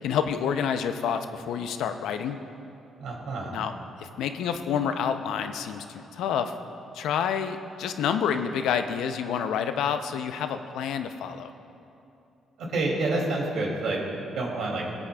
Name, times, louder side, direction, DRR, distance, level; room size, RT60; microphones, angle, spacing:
voice 1, 0.0-2.4 3.5-3.7 4.0-6.5 6.9-11.5, left 7 dB, 85° left, 8 dB, 0.5 m, -28 dB
voice 2, 3.0-3.5 12.7-14.0 14.3-14.8, right 2 dB, 75° right, -2 dB, 2.6 m, -28 dB
22.5 x 8.5 x 2.3 m, 2.7 s
cardioid pair, 90°, 0 cm